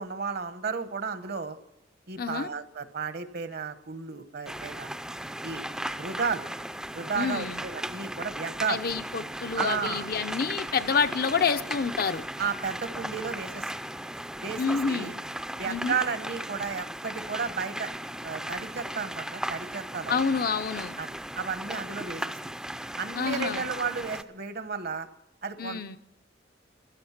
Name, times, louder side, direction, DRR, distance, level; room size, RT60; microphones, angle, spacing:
voice 1, 0.0-1.6 2.1-4.9 5.4-5.6 5.9-6.4 6.9-8.8 9.6-10.1 12.4-13.7 14.4-15.1 15.6-17.9 18.2-20.2 21.0-22.2 23.0-25.1 25.4-26.0, right 5 dB, 60° right, 11 dB, 1.1 m, -33 dB
voice 2, 2.2-2.5 7.1-7.6 8.7-12.2 14.6-15.1 15.7-16.0 20.1-20.9 23.2-23.7 25.6-26.0, left 5 dB, 55° left, 9 dB, 0.6 m, -28 dB
sound 1, 4.5-24.2, right 1 dB, 5° right, 0.5 m, -37 dB
16.0 x 12.5 x 5.9 m, 0.80 s
head